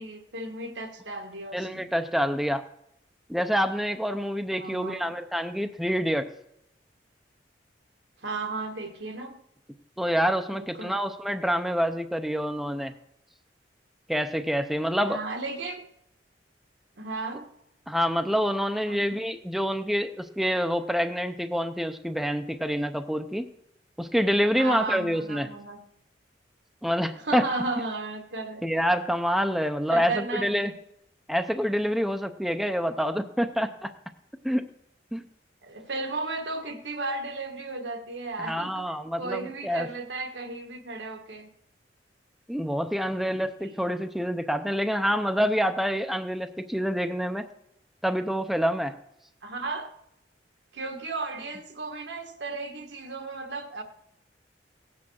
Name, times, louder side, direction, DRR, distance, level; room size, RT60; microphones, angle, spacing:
voice 1, 0.0-1.9 4.6-5.1 8.2-9.4 10.5-11.0 15.0-15.8 17.0-17.5 18.9-19.2 24.6-25.8 27.2-28.6 29.9-30.7 35.6-38.9 39.2-41.5 43.2-43.7 49.4-49.9 50.7-53.8, right 3 dB, 75° right, 5 dB, 1.6 m, -34 dB
voice 2, 1.5-2.6 3.3-6.3 10.0-12.9 14.1-15.2 17.9-23.5 24.0-25.5 26.8-27.4 28.6-30.7 31.3-33.9 34.4-34.6 35.1-35.2 38.4-39.9 42.5-47.5 48.0-48.9, equal, ahead, 7 dB, 0.5 m, -27 dB
17.0 x 8.5 x 6.3 m, 0.80 s
head